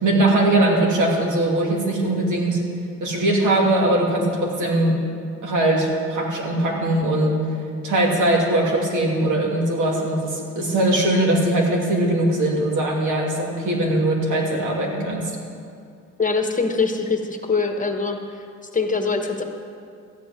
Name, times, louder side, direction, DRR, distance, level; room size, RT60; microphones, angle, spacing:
voice 1, 0.0-2.6 3.0-5.0 5.4-7.3 7.8-15.3, right 1 dB, 80° right, -2 dB, 2.6 m, -20 dB
voice 2, 16.2-18.2 18.7-19.4, left 4 dB, 25° left, 4 dB, 1.3 m, -23 dB
13.5 x 5.4 x 9.4 m, 2.4 s
cardioid pair, 90°, 30 cm